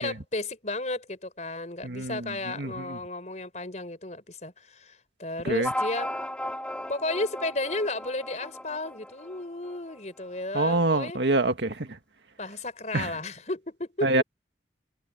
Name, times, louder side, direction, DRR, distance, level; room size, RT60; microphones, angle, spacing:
voice 1, 0.0-6.1 6.9-11.2 12.4-14.2, left 2 dB, 40° left, 4.6 m, -33 dB
voice 2, 1.8-2.3 2.6-3.0 5.4-5.7 10.5-11.9 12.9-13.1 14.0-14.2, right 2 dB, 75° right, 1.9 m, -25 dB
sound 1, 5.6-10.6, left 1 dB, 5° left, 3.7 m, -36 dB
head